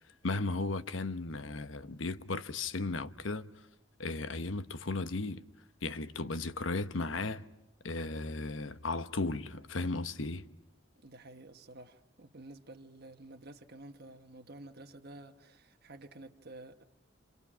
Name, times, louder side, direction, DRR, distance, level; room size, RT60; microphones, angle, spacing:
voice 1, 0.2-3.5 4.0-5.4 5.8-7.5 7.8-10.4, left 3 dB, 90° left, 1.0 m, -35 dB
voice 2, 11.0-16.8, right 2 dB, 55° right, 1.3 m, -51 dB
28.5 x 28.5 x 6.2 m
head